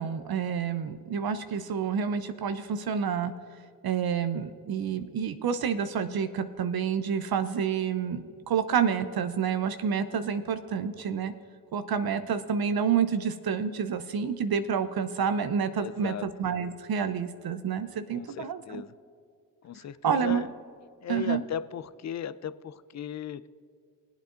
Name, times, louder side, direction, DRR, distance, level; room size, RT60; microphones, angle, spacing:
voice 1, 0.0-3.3 3.8-11.3 11.7-18.8 20.0-20.4 21.1-21.4, right 7 dB, 50° right, 10 dB, 0.7 m, -29 dB
voice 2, 15.8-16.2 18.1-18.9 19.6-20.5 21.0-23.5, left 8 dB, 35° left, 15 dB, 0.6 m, -36 dB
22.0 x 8.1 x 2.5 m, 2.2 s
hypercardioid pair, 40°, 48 cm